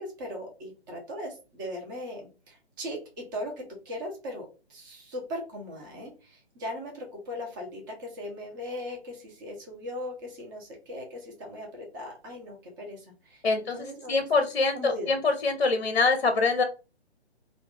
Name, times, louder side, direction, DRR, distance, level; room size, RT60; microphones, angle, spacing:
voice 1, 0.0-14.5 14.7-15.1, left 1 dB, 20° right, 0 dB, 0.8 m, -39 dB
voice 2, 13.4-13.8 14.1-16.6, left 3 dB, 50° left, 6 dB, 0.6 m, -24 dB
2.4 x 2.4 x 3.7 m, 0.32 s
figure-of-eight pair, 140°, 33 cm